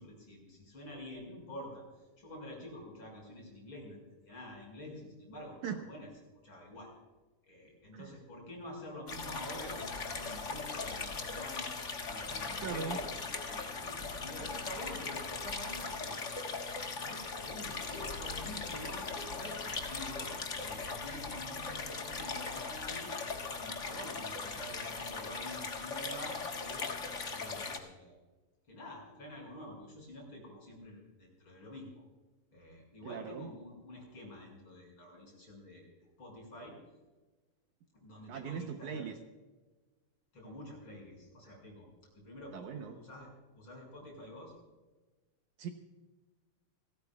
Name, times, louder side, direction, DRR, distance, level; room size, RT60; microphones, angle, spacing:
voice 1, 0.0-6.1 6.4-6.9 7.5-16.2 16.8-23.1 23.6-26.9 27.3-28.2 28.7-32.0 32.5-36.8 37.9-39.1 40.3-41.9 42.1-43.3 43.5-44.5, left 1 dB, 35° left, -1 dB, 6.7 m, -48 dB
sound 1, 9.1-27.8, left 4 dB, 80° left, 0.6 m, -39 dB
voice 2, 12.6-13.0 33.0-33.5 38.3-39.2 42.5-43.0 45.6-45.7, right 7 dB, 70° right, 5 dB, 2.1 m, -40 dB
30.0 x 14.0 x 2.3 m, 1.2 s
omnidirectional pair, 3.8 m